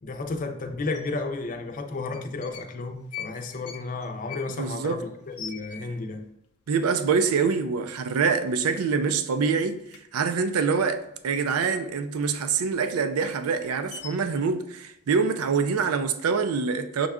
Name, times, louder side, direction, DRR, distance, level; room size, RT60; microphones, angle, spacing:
voice 1, 0.0-6.2, left 3 dB, 40° left, 0.5 m, -33 dB
sound 1, 0.9-1.0 1.9-2.7 3.0-6.3 6.6-6.7 6.9-7.5 7.9-8.0 8.3-9.1 9.4-11.8 12.1-14.4, left 8 dB, 85° left, 0.6 m, -43 dB
voice 2, 4.6-5.0 6.7-9.8 10.1-11.0 11.2-17.1, right 5 dB, 80° right, 0.4 m, -25 dB
6.2 x 2.3 x 3.5 m
head